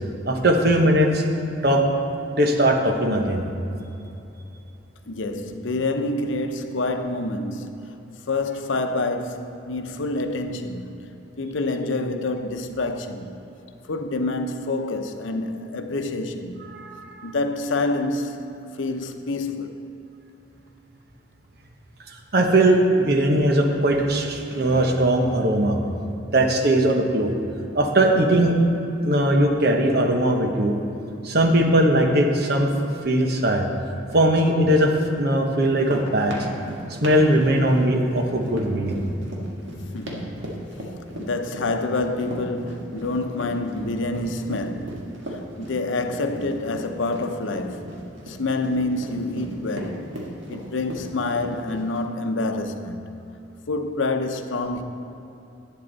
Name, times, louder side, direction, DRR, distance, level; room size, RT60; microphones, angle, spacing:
voice 1, 0.3-1.2 1.6-1.8 2.3-3.4 16.7-17.3 22.3-25.8 26.3-27.3 27.7-28.6 29.0-30.7 31.2-32.7 33.0-33.6 34.1-34.9 35.2-36.3 37.0-39.0, right 1 dB, 55° right, 1.0 m, -19 dB
voice 2, 5.1-8.0 8.3-13.4 13.9-16.6 17.2-19.8 39.9-40.5 41.1-47.9 48.3-50.1 50.5-53.0 53.7-54.8, left 2 dB, 85° left, 0.7 m, -27 dB
sound 1, 35.6-52.0, equal, 85° right, 1.6 m, -37 dB
11.0 x 8.9 x 4.0 m
head